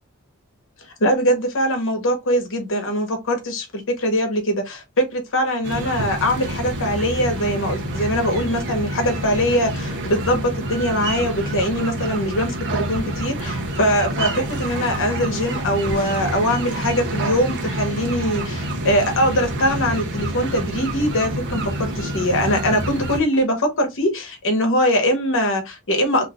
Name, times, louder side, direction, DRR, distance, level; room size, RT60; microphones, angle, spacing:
voice 1, 1.0-26.3, equal, 65° left, 1.0 m, -22 dB
sound 1, 5.6-23.2, right 1 dB, 55° right, 0.8 m, -27 dB
2.7 x 2.4 x 3.4 m
head